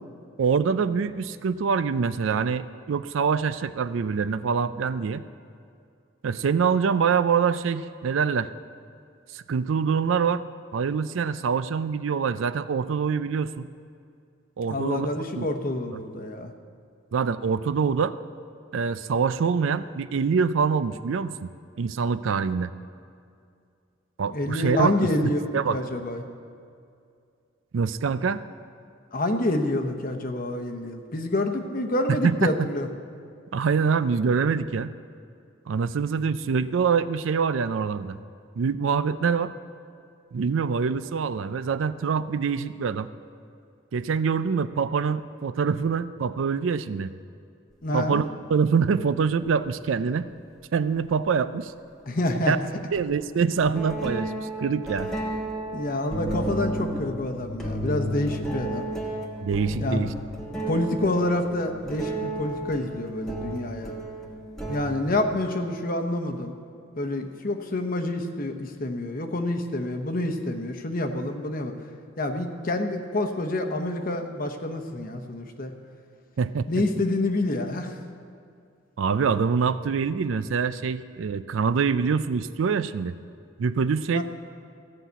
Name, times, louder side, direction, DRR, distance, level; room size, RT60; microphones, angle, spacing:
voice 1, 0.4-5.2 6.2-8.5 9.3-10.4 10.7-13.7 14.6-15.5 17.1-18.1 18.7-21.5 21.8-22.7 24.2-24.9 25.5-25.8 27.7-28.4 32.1-32.7 33.5-34.9 35.7-38.2 38.6-39.5 40.3-43.1 43.9-47.1 47.9-50.3 50.7-51.7 52.5-52.6 52.9-55.1 59.4-60.1 76.4-76.8 79.0-83.1 83.6-84.2, right 6 dB, 75° right, 14 dB, 0.4 m, -25 dB
voice 2, 14.7-16.5 24.3-26.2 29.1-32.9 47.8-48.2 52.1-52.5 55.7-58.9 59.8-60.0 60.7-63.9 64.7-66.5 67.0-71.7 72.2-75.7 76.7-78.0 84.1-84.2, left 1 dB, 45° left, 6 dB, 0.9 m, -27 dB
sound 1, 49.5-49.6 51.1-51.2 52.9-53.1 53.6-65.2, right 1 dB, 5° left, 1.2 m, -32 dB
15.0 x 5.8 x 8.1 m, 2.3 s
head